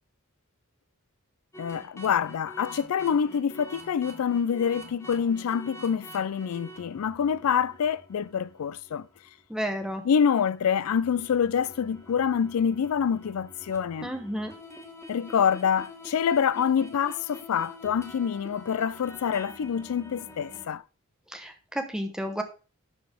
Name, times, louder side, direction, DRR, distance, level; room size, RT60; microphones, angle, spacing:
sound 1, 1.5-9.4 9.8-10.0 10.5-20.8, left 1 dB, 15° left, 1.5 m, -47 dB
voice 1, 1.6-9.1 10.0-14.1 15.1-20.8, left 7 dB, 85° left, 0.4 m, -26 dB
voice 2, 9.5-10.0 14.0-14.5 21.3-22.4, equal, 5° right, 1.1 m, -32 dB
11.5 x 4.1 x 5.0 m
head